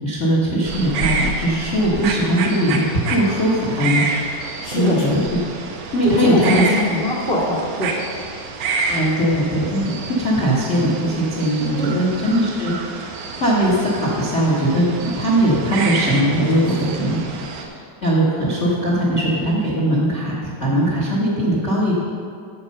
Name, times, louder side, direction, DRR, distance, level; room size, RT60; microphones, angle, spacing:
voice 1, 0.0-5.2 5.9-6.6 8.9-13.1 13.4-17.2 17.6-17.7 18.0-22.0, right 1 dB, 80° left, -5 dB, 0.6 m, -20 dB
sound 1, 0.7-17.7, right 4 dB, 75° right, 2.2 m, -28 dB
voice 2, 4.6-5.0 6.0-8.0 11.8-11.9 16.6-16.8, left 1 dB, 50° right, -8 dB, 0.6 m, -22 dB
9.5 x 7.6 x 5.3 m, 2.4 s
omnidirectional pair, 3.9 m